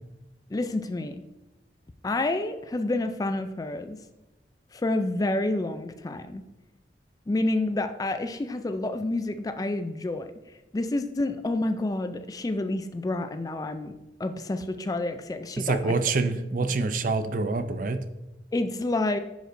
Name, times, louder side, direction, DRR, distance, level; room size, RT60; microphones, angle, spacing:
voice 1, 0.5-1.2 2.0-4.0 4.7-6.4 7.3-10.3 10.7-15.9 18.5-19.2, left 2 dB, 20° left, 9 dB, 0.3 m, -29 dB
voice 2, 15.7-18.0, right 3 dB, 50° right, 10 dB, 0.5 m, -26 dB
10.5 x 5.1 x 2.6 m, 1.0 s
head